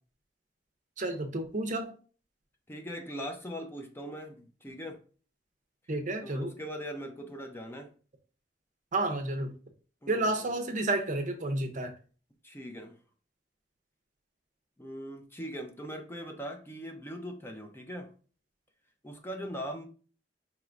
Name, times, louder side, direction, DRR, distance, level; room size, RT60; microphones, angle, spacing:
voice 1, 1.0-1.9 5.9-6.5 8.9-9.5 10.1-11.9, right 2 dB, 45° right, 6 dB, 0.6 m, -31 dB
voice 2, 2.7-5.0 6.2-7.9 10.0-10.6 12.4-13.0 14.8-18.1 19.0-19.9, equal, 15° left, 3 dB, 0.5 m, -40 dB
4.6 x 3.0 x 2.4 m, 0.38 s
head